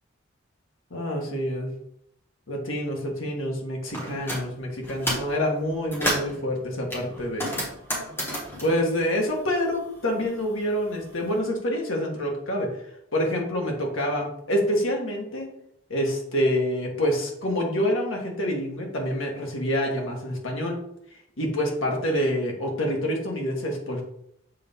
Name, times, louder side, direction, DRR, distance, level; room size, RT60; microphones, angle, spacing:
voice 1, 0.9-1.7 2.5-7.6 8.6-12.8 13.1-15.5 15.9-20.8 21.4-24.0, equal, 85° left, 0 dB, 1.5 m, -27 dB
sound 1, 3.9-4.4 4.8-5.3 5.7-6.4 6.9-9.8 10.1-11.2, equal, 10° left, 1.6 m, -31 dB
6.5 x 4.1 x 3.6 m, 0.73 s
head